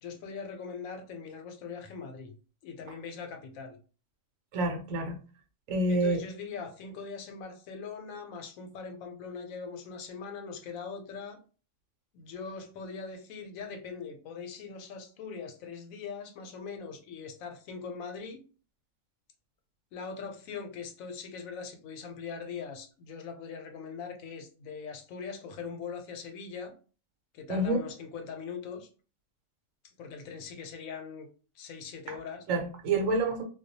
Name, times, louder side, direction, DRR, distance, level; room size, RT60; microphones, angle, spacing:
voice 1, 0.0-2.3 2.6-3.8 5.9-11.4 12.1-18.4 19.9-26.7 27.3-28.9 29.8-31.3 31.6-32.4, left 5 dB, 85° left, 5 dB, 1.0 m, -41 dB
voice 2, 4.5-5.2 5.7-6.2 27.5-27.8 32.1-32.2 32.5-33.4, right 2 dB, 80° right, 4 dB, 1.0 m, -28 dB
2.2 x 2.2 x 2.6 m, 0.37 s
omnidirectional pair, 1.4 m